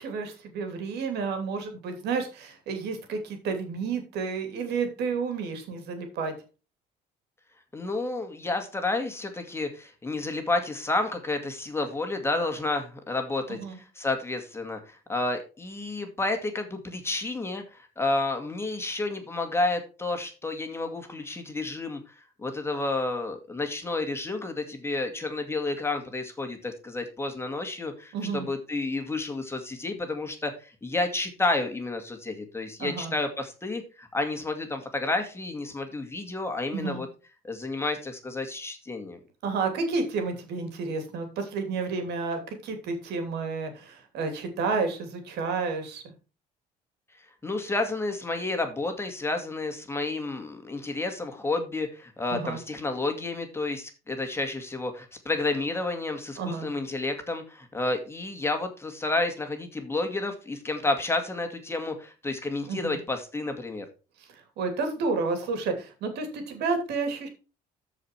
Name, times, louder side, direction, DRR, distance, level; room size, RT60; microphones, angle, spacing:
voice 1, 0.0-6.3 13.5-13.8 28.1-28.5 32.8-33.1 36.7-37.0 39.4-46.1 52.3-52.6 56.4-56.7 62.7-63.0 64.6-67.3, right 4 dB, 75° right, 6 dB, 2.9 m, -31 dB
voice 2, 7.7-37.1 37.4-39.2 47.4-63.9, left 2 dB, 15° left, 5 dB, 2.2 m, -30 dB
13.5 x 5.1 x 4.6 m, 0.33 s
cardioid pair, 110°, 17 cm